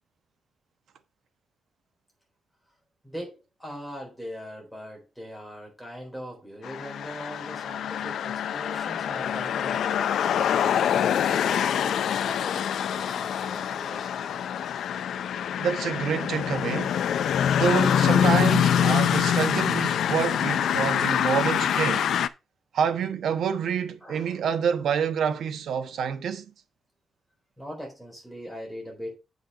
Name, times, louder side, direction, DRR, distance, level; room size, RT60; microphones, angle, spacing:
voice 1, 3.0-14.7 24.0-24.4 27.6-29.2, equal, ahead, 4.0 m, -41 dB
sound 1, 6.6-22.3, left 9 dB, 65° left, 0.5 m, -25 dB
voice 2, 15.6-17.0 17.6-22.1 22.7-26.4, right 7 dB, 65° right, 1.1 m, -27 dB
7.9 x 5.6 x 4.8 m
wide cardioid pair, 175°, 0 cm